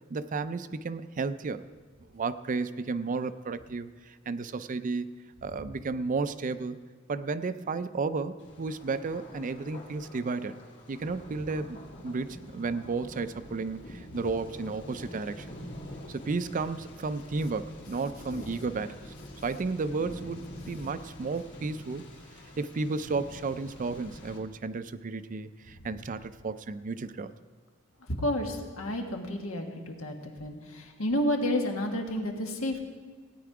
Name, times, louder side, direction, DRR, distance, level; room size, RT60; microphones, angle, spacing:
voice 1, 0.1-1.6 2.1-5.1 5.4-6.8 7.1-10.6 10.9-11.8 12.0-15.6 16.1-19.1 19.4-22.1 22.6-27.3, right 4 dB, 40° right, 13 dB, 0.4 m, -33 dB
Thunder, 8.4-24.4, left 1 dB, 60° left, 2.3 m, -46 dB
voice 2, 28.1-32.8, left 1 dB, 85° left, 3 dB, 1.6 m, -31 dB
17.0 x 9.4 x 4.8 m, 1.5 s
head